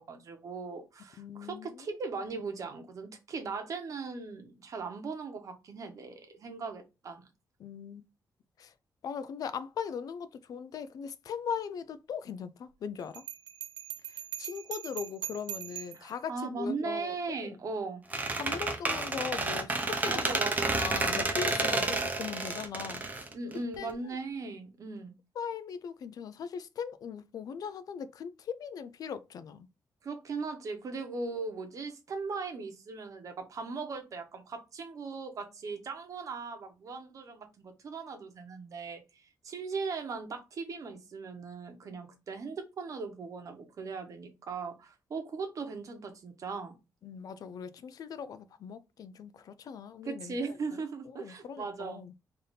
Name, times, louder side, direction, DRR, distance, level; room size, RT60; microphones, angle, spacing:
voice 1, 0.0-7.2 15.9-18.0 20.1-20.9 21.5-21.8 23.3-25.1 30.0-46.7 50.0-52.0, right 4 dB, 50° right, 1.0 m, -39 dB
voice 2, 1.2-1.9 7.6-8.0 8.6-8.7 9.0-13.2 14.1-17.6 18.4-20.3 20.6-23.3 23.8-24.2 25.4-29.7 47.0-50.4 50.7-50.8 51.1-52.1, left 7 dB, 60° left, 0.4 m, -39 dB
Bell, 13.1-16.1, right 11 dB, 90° right, 0.4 m, -41 dB
Squeak, 18.1-23.9, right 3 dB, 20° right, 0.7 m, -30 dB
3.4 x 2.7 x 3.9 m
wide cardioid pair, 150°, 7 cm